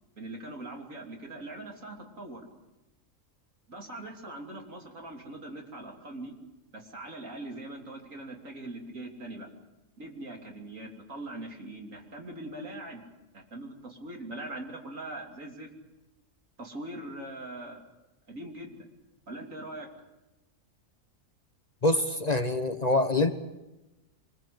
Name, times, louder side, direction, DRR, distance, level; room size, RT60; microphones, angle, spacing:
voice 1, 0.2-2.4 3.7-6.3 6.7-9.5 10.0-13.0 13.3-15.7 16.6-17.8 18.3-18.8 19.3-19.9, right 1 dB, 75° right, 1 dB, 3.6 m, -41 dB
voice 2, 21.8-23.3, left 2 dB, 35° left, 9 dB, 1.0 m, -25 dB
25.0 x 21.0 x 8.0 m, 1.0 s
omnidirectional pair, 1.4 m